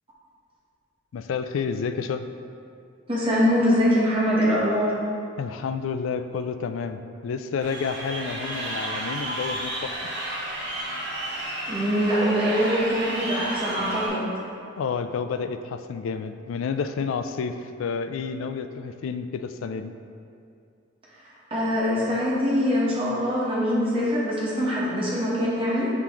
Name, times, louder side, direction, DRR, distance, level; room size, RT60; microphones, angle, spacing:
voice 1, 1.1-2.2 5.4-10.1 14.8-19.9, left 5 dB, 90° left, 9 dB, 0.3 m, -30 dB
voice 2, 3.1-4.9 11.7-14.3 21.5-25.9, equal, 25° right, -7 dB, 1.3 m, -23 dB
Crowd, 7.6-14.1, right 1 dB, 60° right, 1.1 m, -32 dB
5.8 x 4.5 x 3.7 m, 2.4 s
head